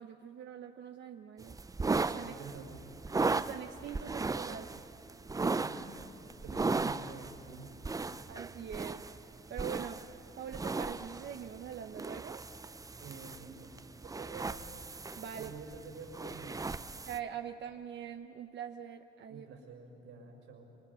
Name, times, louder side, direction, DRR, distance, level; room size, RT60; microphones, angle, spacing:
voice 1, 0.0-1.6 1.9-2.4 3.3-4.8 8.3-9.1 9.5-10.1 10.4-12.4 15.2-15.5 17.1-19.5, right 8 dB, 65° right, 5 dB, 0.9 m, -43 dB
sound 1, 1.4-17.2, right 3 dB, 15° right, 0.6 m, -37 dB
voice 2, 2.2-2.8 5.4-7.7 8.0-8.1 13.0-14.7 15.3-16.8 19.3-20.7, right 4 dB, 85° right, 2 dB, 5.9 m, -49 dB
28.5 x 25.5 x 5.6 m, 3.0 s
cardioid pair, 90°, 20 cm